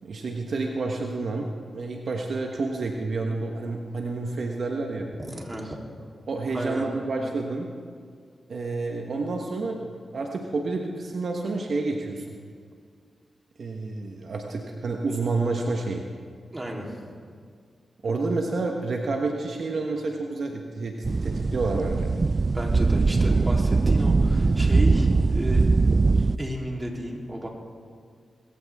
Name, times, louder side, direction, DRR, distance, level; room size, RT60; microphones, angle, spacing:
voice 1, 0.0-5.1 6.3-7.7 8.5-12.4 13.6-16.0 18.0-20.9 21.2-22.1, right 3 dB, 70° right, 1 dB, 1.4 m, -29 dB
voice 2, 5.2-5.8 6.5-6.8 16.5-17.1 22.5-26.0 26.4-27.5, right 1 dB, 25° right, -1 dB, 3.5 m, -33 dB
sound 1, 21.0-26.4, right 3 dB, 45° right, 0.4 m, -21 dB
20.5 x 15.0 x 3.7 m, 2.1 s
cardioid pair, 45°, 0 cm